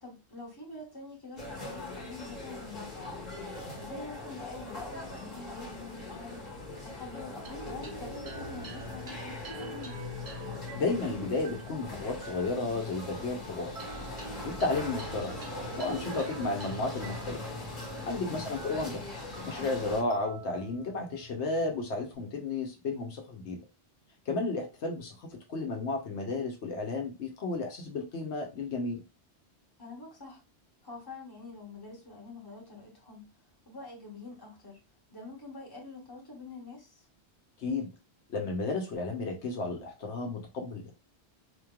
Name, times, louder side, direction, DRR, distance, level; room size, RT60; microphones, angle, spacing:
voice 1, 0.0-3.2 3.8-6.4 6.8-10.0 18.1-18.4 29.8-30.4 30.8-33.3 33.6-34.8 35.1-37.1, left 3 dB, 20° left, -2 dB, 1.4 m, -46 dB
sound 1, 1.4-20.0, left 2 dB, 40° left, 1.7 m, -42 dB
sound 2, 7.4-22.1, equal, 40° right, 0.6 m, -44 dB
voice 2, 10.7-13.7 14.4-15.3 15.8-17.4 18.0-19.0 19.4-23.6 24.3-29.0 37.6-37.9 38.3-40.9, left 3 dB, 80° left, 2 dB, 1.1 m, -33 dB
4.2 x 3.1 x 2.3 m, 0.28 s
omnidirectional pair, 1.1 m